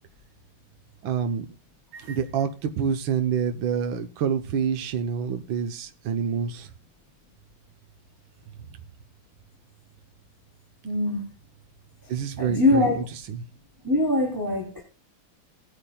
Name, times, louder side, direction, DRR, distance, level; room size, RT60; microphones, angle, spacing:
voice 1, 1.0-1.4 1.9-6.7 12.1-13.4, right 7 dB, 80° right, 1.7 m, -27 dB
voice 2, 10.8-11.2 12.4-13.0 13.8-14.8, left 2 dB, 10° right, 3.1 m, -23 dB
19.0 x 10.0 x 2.3 m
omnidirectional pair, 2.1 m